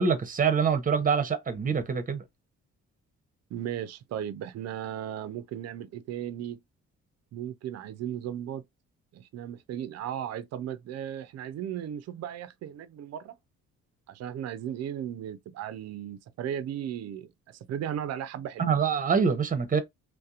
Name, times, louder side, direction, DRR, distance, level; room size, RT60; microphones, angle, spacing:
voice 1, 0.0-2.2 18.6-19.8, right 6 dB, 25° right, 0.7 m, -25 dB
voice 2, 3.5-6.6 7.3-8.6 9.1-13.3 14.1-18.8, right 10 dB, 60° right, 0.5 m, -36 dB
2.7 x 2.1 x 2.4 m
cardioid pair, 90°, 30 cm